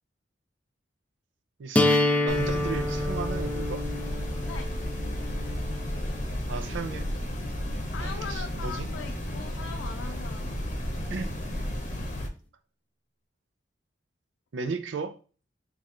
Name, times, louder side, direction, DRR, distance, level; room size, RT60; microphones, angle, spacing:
voice 1, 1.6-3.8 6.5-7.2 8.0-8.9 11.1-11.3 14.5-15.2, right 4 dB, 80° right, 0.4 m, -35 dB
sound 1, 1.7-7.7, left 1 dB, 10° left, 0.3 m, -29 dB
sound 2, 2.3-12.3, equal, 45° left, 0.8 m, -33 dB
voice 2, 7.9-11.1, left 6 dB, 85° left, 0.4 m, -41 dB
4.0 x 3.0 x 2.5 m
head